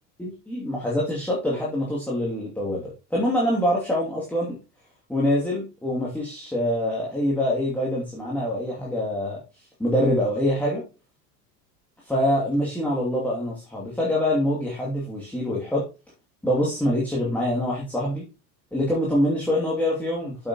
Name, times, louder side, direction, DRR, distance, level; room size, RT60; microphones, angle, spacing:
voice 1, 0.2-4.6 5.1-9.4 9.8-10.8 12.0-15.8 16.4-18.2 18.7-20.5, left 1 dB, 5° left, -5 dB, 2.6 m, -25 dB
8.0 x 7.7 x 3.0 m, 0.31 s
hypercardioid pair, 80°, 49 cm